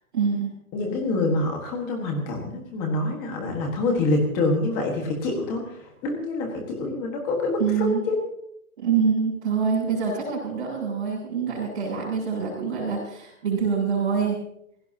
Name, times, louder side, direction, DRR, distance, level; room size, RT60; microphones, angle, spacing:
voice 1, 0.1-0.5 7.6-8.0 8.8-14.4, right 6 dB, 35° right, -7 dB, 7.5 m, -25 dB
voice 2, 0.7-8.2, left 2 dB, 10° left, 2 dB, 1.5 m, -26 dB
28.5 x 16.5 x 2.8 m, 0.75 s
hypercardioid pair, 180°, 43 cm